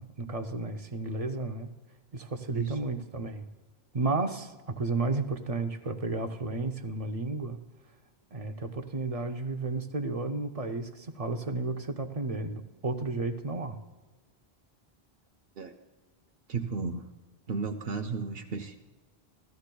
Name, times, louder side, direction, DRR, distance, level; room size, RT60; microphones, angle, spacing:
voice 1, 0.0-1.7 2.1-3.5 3.9-7.6 8.3-13.8, right 3 dB, 40° right, 7 dB, 0.6 m, -32 dB
voice 2, 16.5-17.1 17.5-18.8, right 4 dB, 70° right, 5 dB, 0.8 m, -33 dB
16.0 x 13.5 x 2.2 m, 1.3 s
omnidirectional pair, 1.1 m